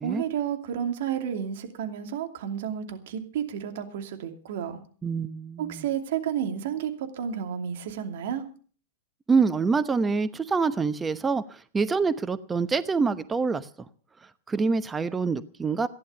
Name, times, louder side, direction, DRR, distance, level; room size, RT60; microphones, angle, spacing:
voice 1, 0.0-4.8 5.6-8.5, right 9 dB, 60° right, 6 dB, 2.6 m, -31 dB
voice 2, 5.0-5.8 9.3-13.7 14.5-15.9, right 4 dB, 15° right, 12 dB, 0.9 m, -26 dB
16.0 x 11.0 x 7.0 m, 0.43 s
hypercardioid pair, 105°, 0 cm